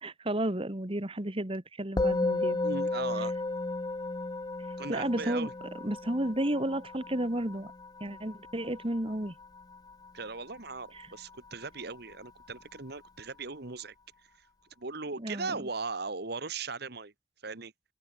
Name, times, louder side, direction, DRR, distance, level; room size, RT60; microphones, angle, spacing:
voice 1, 0.0-2.6 4.9-5.5 5.8-7.7 8.0-9.4 10.9-11.1 15.2-15.6, right 1 dB, 30° right, 1.9 m, -32 dB
Musical instrument, 2.0-11.5, left 2 dB, 20° left, 0.5 m, -34 dB
voice 2, 2.6-3.3 4.8-5.5 10.1-14.0 14.4-14.5 14.8-17.1 17.4-17.7, right 4 dB, 55° right, 1.7 m, -38 dB
head